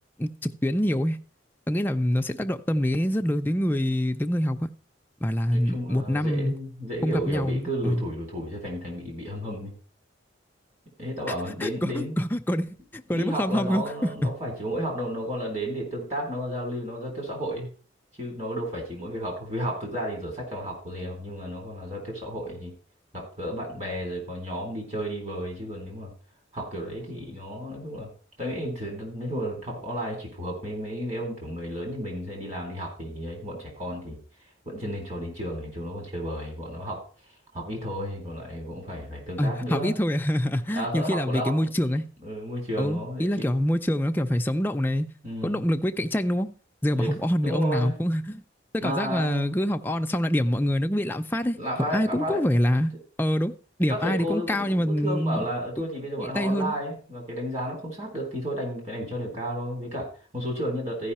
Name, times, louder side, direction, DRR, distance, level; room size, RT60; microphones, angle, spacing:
voice 1, 0.2-1.2 1.7-4.7 5.2-6.6 7.0-8.0 11.6-14.3 39.4-42.1 42.8-45.1 45.4-46.5 46.8-48.4 48.7-51.6 51.9-52.9 53.2-53.5 53.8-55.5 56.2-56.7, equal, 10° left, 0.4 m, -25 dB
voice 2, 5.5-9.7 11.0-12.2 13.1-17.7 18.2-22.7 23.1-26.1 26.5-28.1 28.4-34.2 34.7-37.0 37.5-40.0 40.7-43.5 45.2-45.6 47.0-47.2 47.4-47.9 48.8-49.5 51.6-52.4 53.9-61.1, equal, 35° right, 3.8 m, -32 dB
14.5 x 5.5 x 4.2 m
head